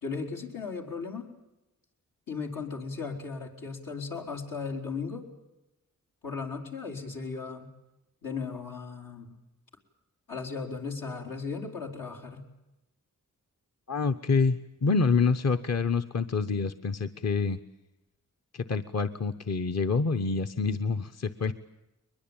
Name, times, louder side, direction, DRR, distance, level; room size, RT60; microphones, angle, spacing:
voice 1, 0.0-1.3 2.3-5.3 6.2-7.7 8.2-9.4 10.3-12.5, left 5 dB, 90° left, 1 dB, 4.2 m, -36 dB
voice 2, 13.9-17.6 18.5-21.5, left 4 dB, 55° left, 8 dB, 1.0 m, -27 dB
22.0 x 21.5 x 8.9 m, 0.97 s
cardioid pair, 65°, 32 cm